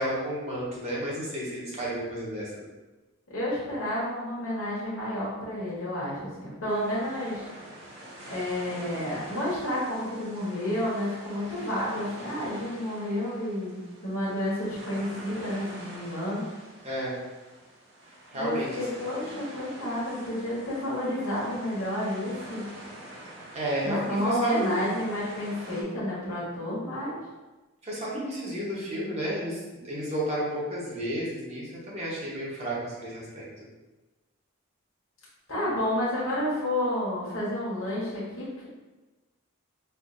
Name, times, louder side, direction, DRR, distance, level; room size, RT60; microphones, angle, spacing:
voice 1, 0.0-2.7 16.8-17.2 18.3-18.7 23.5-24.8 27.8-29.6 29.8-33.4, right 1 dB, 30° right, -6 dB, 0.9 m, -31 dB
voice 2, 3.3-7.5 8.3-16.5 18.3-22.6 23.8-27.2 35.5-38.7, left 1 dB, 65° left, -8 dB, 1.0 m, -30 dB
sound 1, 6.7-25.8, right 1 dB, 55° right, 0.7 m, -46 dB
4.3 x 2.4 x 2.5 m, 1.2 s
head